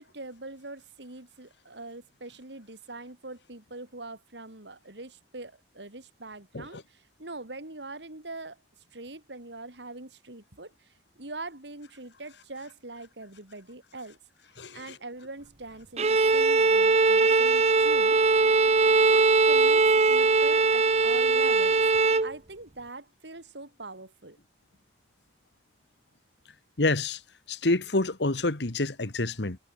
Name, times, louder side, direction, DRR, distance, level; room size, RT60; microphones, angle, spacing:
voice 1, 0.0-8.6 8.9-14.2 14.7-18.4 19.1-21.8 22.2-24.4, right 2 dB, 75° right, 4.0 m, -43 dB
Bowed string instrument, 16.0-22.3, right 4 dB, 35° right, 0.7 m, -21 dB
voice 2, 26.8-27.2 27.5-29.6, left 2 dB, 75° left, 1.7 m, -27 dB
head